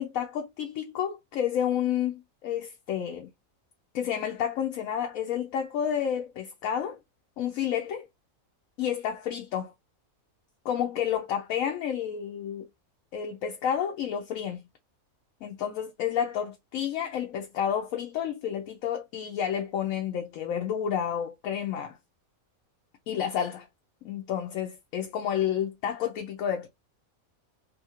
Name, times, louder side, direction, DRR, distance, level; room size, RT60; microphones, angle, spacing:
voice 1, 0.0-3.3 3.9-7.0 7.4-8.0 8.8-9.7 10.6-12.7 13.1-14.6 15.4-22.0 23.1-23.7 24.0-26.7, left 9 dB, 75° left, 1.0 m, -30 dB
2.7 x 2.5 x 2.8 m
omnidirectional pair, 1.5 m